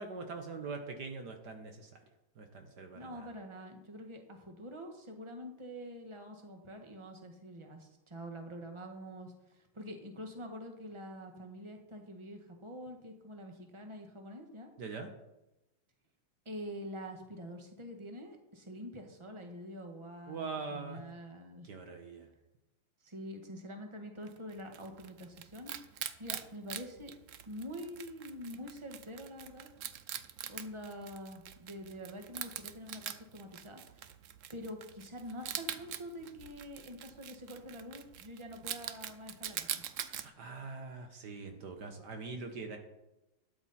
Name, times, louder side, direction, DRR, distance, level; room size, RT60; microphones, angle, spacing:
voice 1, 0.0-1.9 2.4-3.3 14.8-15.1 20.3-21.0 21.6-22.3 40.0-42.8, right 4 dB, 60° right, 5 dB, 1.7 m, -43 dB
voice 2, 2.9-14.7 16.4-21.7 23.0-25.8 26.2-27.1 27.4-29.7 30.5-34.1 34.5-39.8, equal, 15° right, 3 dB, 1.4 m, -46 dB
Wild animals, 24.3-40.3, right 10 dB, 80° right, 0.7 m, -44 dB
12.5 x 9.5 x 4.3 m, 0.96 s
omnidirectional pair, 2.1 m